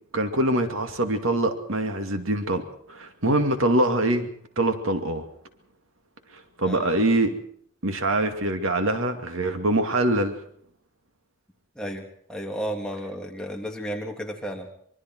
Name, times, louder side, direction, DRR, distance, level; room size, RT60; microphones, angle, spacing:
voice 1, 0.1-4.3 4.6-5.2 6.3-7.3 7.8-10.4, right 1 dB, 75° right, 6 dB, 2.4 m, -24 dB
voice 2, 11.7-14.7, equal, 5° left, 0 dB, 2.9 m, -33 dB
25.0 x 23.5 x 4.7 m, 0.64 s
head